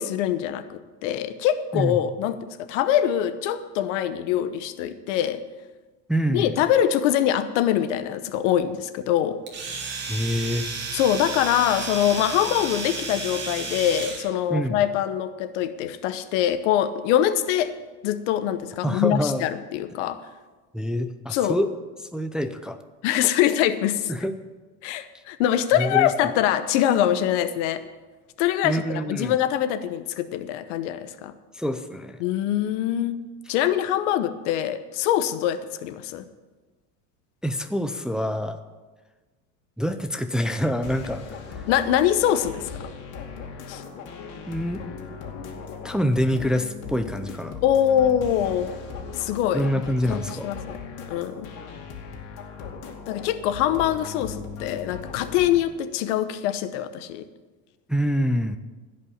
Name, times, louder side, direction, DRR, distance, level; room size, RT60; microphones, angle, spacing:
voice 1, 0.0-5.4 6.3-9.4 10.9-17.7 18.0-20.2 21.3-21.6 23.0-24.1 24.8-27.8 28.4-31.3 32.2-33.2 33.5-36.2 41.7-42.6 43.7-43.8 47.6-48.7 49.2-49.7 50.1-50.8 51.1-51.5 53.1-57.3, left 11 dB, 80° left, 12 dB, 1.0 m, -24 dB
voice 2, 6.1-6.5 10.0-10.7 14.5-14.8 18.8-19.4 20.7-21.7 22.1-22.8 24.1-24.4 25.8-26.1 28.6-29.3 31.5-32.2 37.4-38.6 39.8-41.2 44.5-44.8 45.8-47.6 49.5-50.5 57.9-58.6, equal, ahead, 8 dB, 0.5 m, -26 dB
Domestic sounds home sounds, 9.5-14.3, right 4 dB, 30° right, 2.2 m, -32 dB
sound 1, 40.8-55.6, left 5 dB, 60° left, 2.5 m, -38 dB
15.5 x 5.5 x 8.6 m, 1.3 s
supercardioid pair, 135°, 36 cm